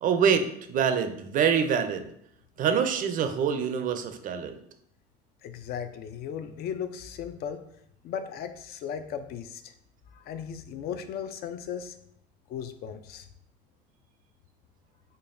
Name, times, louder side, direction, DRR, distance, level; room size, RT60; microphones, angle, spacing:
voice 1, 0.0-2.1 2.6-4.6, right 7 dB, 40° right, 8 dB, 0.5 m, -25 dB
voice 2, 5.4-7.6 8.0-9.7 10.1-11.9 12.5-13.3, left 8 dB, 50° left, 9 dB, 0.4 m, -36 dB
5.1 x 2.3 x 2.5 m, 0.73 s
supercardioid pair, 100°, 20 cm